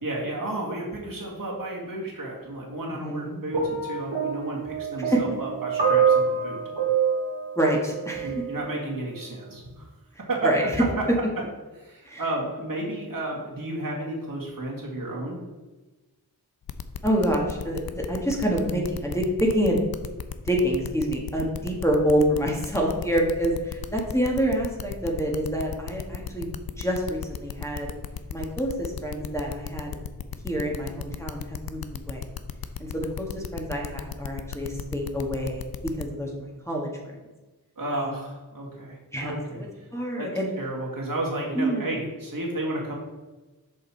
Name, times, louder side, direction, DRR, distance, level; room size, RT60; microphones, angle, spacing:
voice 1, 0.0-6.6 8.2-9.9 10.2-10.5 11.8-15.4 37.8-39.9 40.1-40.3 40.6-42.9, right 1 dB, 55° right, -3 dB, 2.1 m, -32 dB
voice 2, 2.9-3.4 5.1-5.2 7.6-8.3 10.4-10.8 12.0-12.2 17.0-19.8 20.4-26.5 26.8-27.9 28.3-30.0 30.4-32.2 32.8-35.7 36.0-36.9 37.9-38.1 39.1-39.7 39.9-40.5 41.5-41.9, equal, 5° left, -2 dB, 1.4 m, -27 dB
sound 1, 3.5-8.6 9.5-9.7, right 6 dB, 85° right, 1.3 m, -26 dB
sound 2, 16.7-36.1, left 9 dB, 65° left, 0.6 m, -35 dB
6.6 x 5.3 x 4.4 m, 1.2 s
wide cardioid pair, 65°, 40 cm